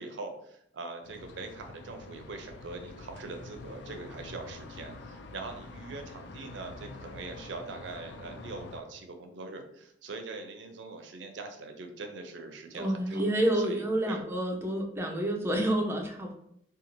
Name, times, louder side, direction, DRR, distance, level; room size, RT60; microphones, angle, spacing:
voice 1, 0.0-13.2 13.6-14.2, right 3 dB, 70° right, 5 dB, 0.4 m, -42 dB
sound 1, 1.0-8.8, left 3 dB, 65° left, 0.3 m, -46 dB
voice 2, 12.8-16.3, right 1 dB, 15° right, 1 dB, 0.4 m, -29 dB
2.6 x 2.3 x 2.9 m, 0.72 s
head